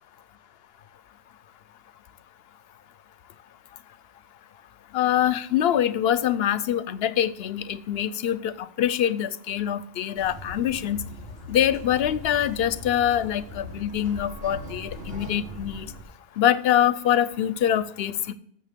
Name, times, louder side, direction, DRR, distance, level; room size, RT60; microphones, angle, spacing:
voice 1, 4.9-11.0 11.5-15.9 16.4-18.3, left 10 dB, 70° left, 15 dB, 0.9 m, -24 dB
sound 1, 10.2-16.0, left 1 dB, 70° right, 1.9 m, -40 dB
12.5 x 7.6 x 3.6 m, 0.67 s
omnidirectional pair, 1.1 m